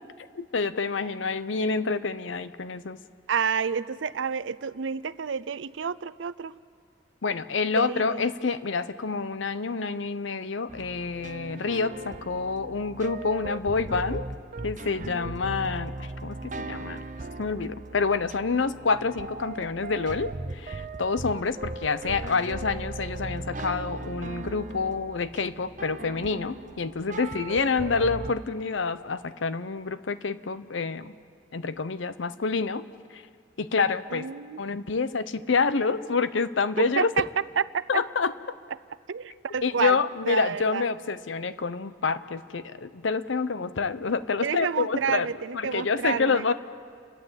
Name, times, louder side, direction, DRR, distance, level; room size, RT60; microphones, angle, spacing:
voice 1, 0.3-3.0 7.2-14.2 14.6-15.9 16.2-17.0 17.4-31.1 31.5-32.8 33.1-33.2 33.6-34.3 34.6-37.1 37.9-38.3 39.6-45.3 45.5-46.5, left 4 dB, 85° left, 14 dB, 0.7 m, -27 dB
voice 2, 3.3-6.6 7.7-8.2 34.1-34.6 37.0-37.3 37.6-38.0 39.1-40.8 44.4-46.5, right 6 dB, 80° right, 15 dB, 0.5 m, -29 dB
sound 1, 10.7-28.3, right 2 dB, 45° right, 0.7 m, -38 dB
29.5 x 11.5 x 8.0 m, 2.2 s
head